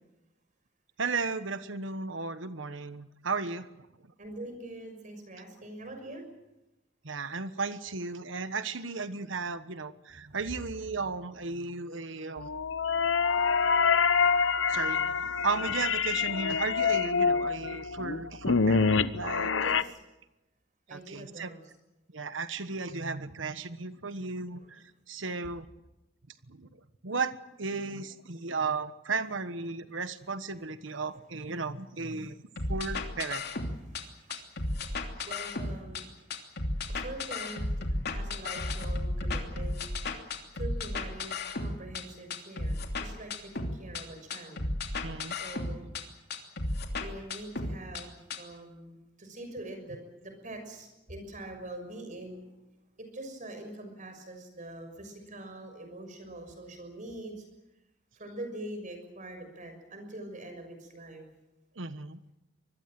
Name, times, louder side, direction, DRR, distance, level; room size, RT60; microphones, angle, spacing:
voice 1, 1.0-3.7 7.0-12.5 14.7-19.5 20.9-21.5 22.1-25.7 26.5-26.7 27.0-32.4 32.7-33.4 35.2-35.3 45.0-45.4 61.8-62.2, right 4 dB, 75° right, 12 dB, 1.3 m, -35 dB
voice 2, 4.2-6.2 19.6-20.0 20.9-21.6 24.5-24.7 33.9-36.1 36.7-39.8 40.5-44.6 45.4-45.9 47.0-52.5 53.0-57.4 58.2-61.3, right 1 dB, 40° right, 6 dB, 6.3 m, -44 dB
sound 1, 12.4-19.8, left 5 dB, 75° left, 0.9 m, -26 dB
sound 2, 32.6-34.0 34.3-36.0 36.3-42.0 42.3-44.0 44.3-46.0 46.3-48.0 48.3-48.4, left 2 dB, 60° left, 2.9 m, -33 dB
25.0 x 21.0 x 7.7 m, 0.96 s
head